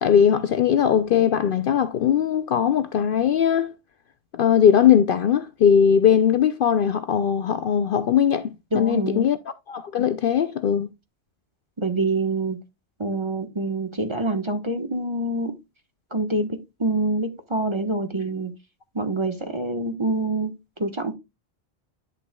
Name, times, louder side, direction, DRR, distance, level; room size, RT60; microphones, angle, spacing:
voice 1, 0.0-3.7 4.3-9.4 9.7-10.9, left 8 dB, 60° left, 0.6 m, -20 dB
voice 2, 8.7-9.3 11.8-12.6 13.0-15.6 16.1-18.5 18.9-20.5 20.8-21.1, right 2 dB, 25° right, 1.2 m, -26 dB
10.0 x 6.9 x 2.2 m
omnidirectional pair, 1.1 m